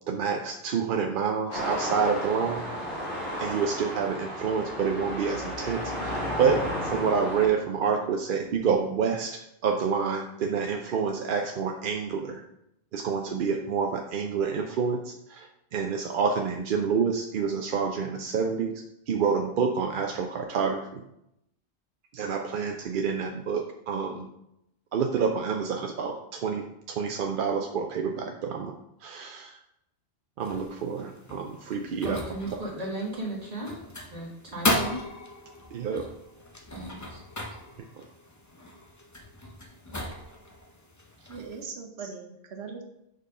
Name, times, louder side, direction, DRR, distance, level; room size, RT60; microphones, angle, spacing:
voice 1, 0.1-2.7 3.4-12.4 12.9-18.7 19.1-21.0 22.1-24.3 24.9-28.7 29.0-29.6 30.4-32.2 32.5-32.6 35.7-36.1, right 6 dB, 60° right, 3 dB, 0.6 m, -28 dB
sound 1, 1.5-7.5, equal, 55° left, 1.6 m, -33 dB
sound 2, 30.4-41.6, left 1 dB, 20° left, 0.5 m, -36 dB
voice 2, 32.0-33.8 34.1-35.0 36.7-37.2, right 2 dB, 35° right, -3 dB, 1.8 m, -35 dB
voice 3, 41.3-42.8, right 5 dB, 85° right, 3 dB, 1.0 m, -40 dB
5.3 x 4.5 x 4.8 m, 0.82 s
omnidirectional pair, 1.1 m